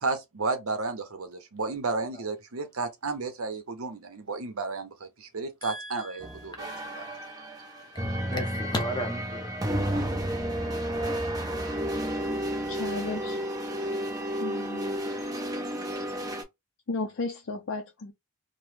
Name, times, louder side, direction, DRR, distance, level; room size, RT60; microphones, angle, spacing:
voice 1, 0.0-6.7, right 3 dB, 70° right, 0.8 m, -32 dB
voice 2, 5.6-6.8 8.0-9.5, left 1 dB, 20° left, 0.8 m, -35 dB
sound 1, 6.2-16.4, equal, 15° right, 0.7 m, -31 dB
voice 3, 12.7-13.4 14.4-14.9 16.9-18.1, left 3 dB, 55° left, 0.5 m, -34 dB
3.0 x 2.1 x 3.2 m
head